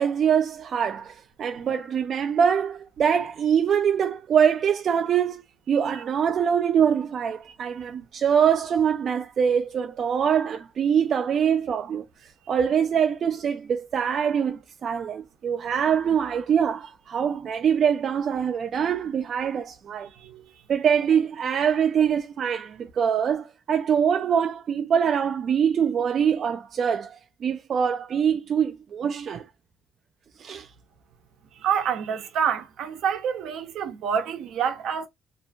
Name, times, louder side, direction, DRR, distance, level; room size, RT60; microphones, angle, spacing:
voice 1, 0.0-5.4 5.7-12.0 12.5-20.1 20.7-27.2 27.4-29.4 30.4-30.7, right 7 dB, 45° right, 0.4 m, -24 dB
voice 2, 20.1-20.4 31.6-35.1, right 8 dB, 75° right, 0.7 m, -27 dB
2.6 x 2.3 x 2.6 m
cardioid pair, 145°, 0 cm